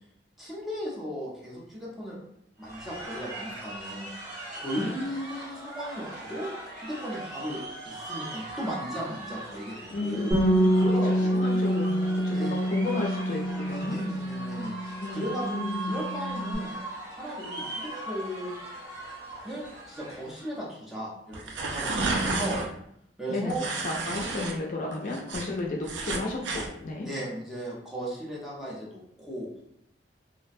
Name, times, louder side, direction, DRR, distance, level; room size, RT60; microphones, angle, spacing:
voice 1, 0.4-2.2 2.6-4.1 4.5-6.5 6.7-10.3 10.8-11.4 12.3-12.8 13.9-16.8 17.1-18.5 19.4-22.6 23.2-23.7 27.0-29.5, equal, ahead, -6 dB, 0.6 m, -36 dB
sound 1, 2.6-20.6, right 1 dB, 40° right, 1.2 m, -40 dB
voice 2, 9.9-14.0 15.0-16.0 22.0-22.5 23.3-27.1, left 2 dB, 45° left, -1 dB, 0.4 m, -33 dB
Bass guitar, 10.3-15.0 15.3-16.6, equal, 25° right, 1.0 m, -27 dB
sound 2, 21.3-22.7 23.5-24.5 24.9-26.7, right 3 dB, 80° right, 0.4 m, -31 dB
2.4 x 2.1 x 2.5 m, 0.73 s
head